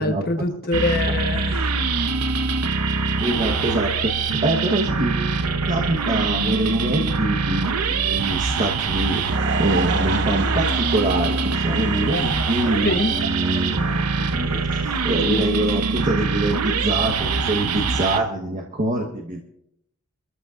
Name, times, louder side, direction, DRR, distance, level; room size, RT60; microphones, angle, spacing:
voice 1, 0.0-1.7 12.2-12.4 12.8-13.1, left 2 dB, 45° left, 6 dB, 1.1 m, -24 dB
sound 1, 0.7-18.2, right 4 dB, 90° right, 0.9 m, -23 dB
voice 2, 3.2-4.1 4.4-5.4 5.7-9.2 9.6-19.4, right 1 dB, 35° right, 0 dB, 1.3 m, -25 dB
Laughter / Crowd, 8.9-15.2, right 5 dB, 55° right, 0.7 m, -31 dB
24.5 x 14.0 x 2.5 m, 0.78 s
head